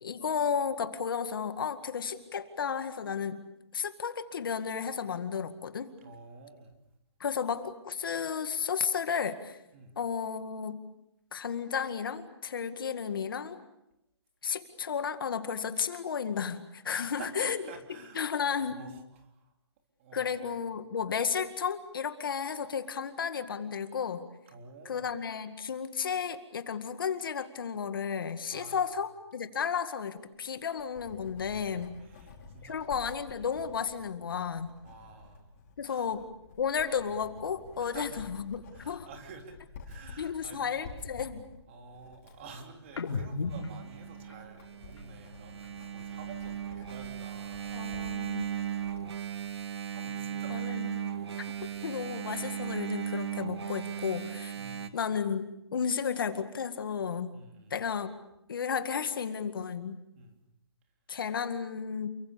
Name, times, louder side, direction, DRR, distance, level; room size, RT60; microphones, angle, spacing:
voice 1, 0.0-3.4 3.7-5.9 7.2-9.6 10.0-10.8 11.3-13.6 14.4-17.6 18.2-18.8 20.1-24.3 24.9-32.0 32.6-34.7 35.8-36.2 36.6-39.1 40.2-41.4 47.7-48.5 50.5-50.9 51.6-54.5 54.9-57.3 57.7-58.1 58.5-60.0 61.1-62.1, left 7 dB, 50° left, 9 dB, 2.1 m, -33 dB
voice 2, 6.0-6.7 9.7-9.9 16.9-19.5 20.0-20.6 24.5-25.1 28.5-29.0 32.0-32.9 34.8-35.5 35.9-36.1 37.8-38.2 38.7-39.6 39.8-40.8 41.7-49.5 49.9-51.8 53.9-54.1 54.6-55.0 57.3-57.8 60.1-60.4, right 4 dB, 25° right, 4 dB, 3.4 m, -50 dB
Writing, 30.3-49.1, left 4 dB, 30° left, 5.6 m, -51 dB
sound 1, 42.9-46.5 46.8-48.6 48.9-50.8 51.1-53.0, left 3 dB, 80° left, 4.3 m, -43 dB
Engine, 43.5-54.9, right 9 dB, 70° right, 2.2 m, -37 dB
30.0 x 24.0 x 6.9 m, 0.84 s
hypercardioid pair, 170°, 14 cm